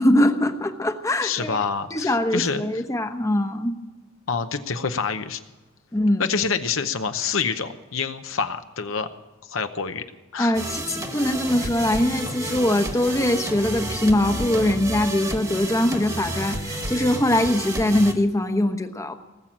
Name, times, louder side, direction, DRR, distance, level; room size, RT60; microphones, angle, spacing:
voice 1, 0.0-1.6 1.9-3.8 5.9-6.3 10.4-19.1, left 1 dB, 15° left, 7 dB, 1.0 m, -22 dB
voice 2, 1.2-2.6 4.3-5.4 6.2-9.1 9.5-10.0 10.3-10.5, left 5 dB, 70° left, 8 dB, 0.9 m, -26 dB
sound 1, 10.5-18.1, right 1 dB, 15° right, 1.5 m, -31 dB
19.0 x 7.7 x 8.8 m, 1.2 s
head